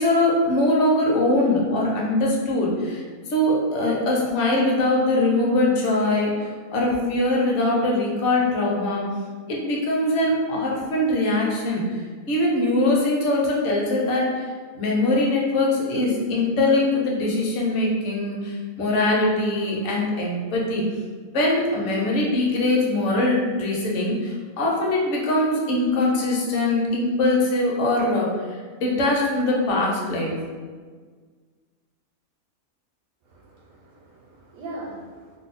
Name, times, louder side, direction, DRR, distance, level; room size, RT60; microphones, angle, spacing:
voice 1, 0.0-3.0 3.3-6.3 6.7-9.0 9.5-11.8 12.3-14.4 14.7-20.8 21.3-28.3 28.8-30.3, left 2 dB, 60° left, -3 dB, 0.9 m, -22 dB
voice 2, 33.3-35.4, right 1 dB, 75° right, -4 dB, 1.0 m, -40 dB
2.7 x 2.0 x 4.0 m, 1.5 s
omnidirectional pair, 1.5 m